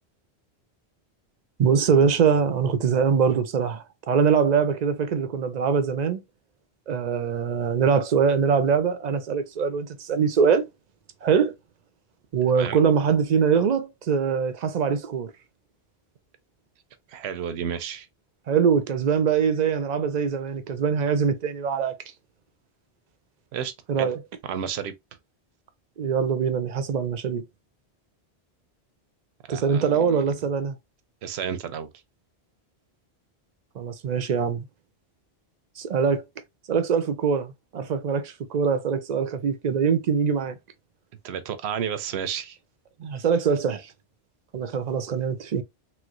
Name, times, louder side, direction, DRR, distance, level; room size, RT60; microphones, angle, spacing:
voice 1, 1.6-6.2 6.9-10.7 11.2-11.5 12.3-15.3 18.5-22.0 23.9-24.2 26.0-27.4 29.5-30.8 33.8-34.7 35.8-36.2 36.7-40.6 43.0-43.9 44.5-45.6, right 6 dB, 55° right, 0.5 m, -23 dB
voice 2, 12.5-12.9 17.1-18.1 23.5-24.1 24.4-24.9 29.5-30.2 31.2-31.9 41.2-42.6, right 8 dB, 85° right, 0.8 m, -31 dB
3.1 x 3.0 x 2.4 m
omnidirectional pair, 1.1 m